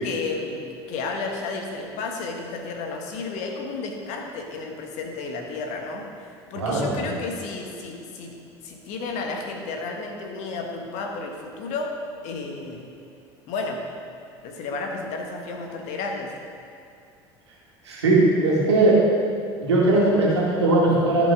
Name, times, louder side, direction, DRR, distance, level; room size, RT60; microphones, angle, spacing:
voice 1, 0.0-8.4 8.6-12.0 12.2-12.9 13.5-13.9 14.4-16.4, left 3 dB, 60° left, 2 dB, 1.4 m, -32 dB
voice 2, 6.5-7.2 17.8-19.0 19.6-21.3, right 2 dB, 85° right, -5 dB, 2.2 m, -19 dB
14.0 x 5.3 x 3.9 m, 2.5 s
hypercardioid pair, 65°, 14 cm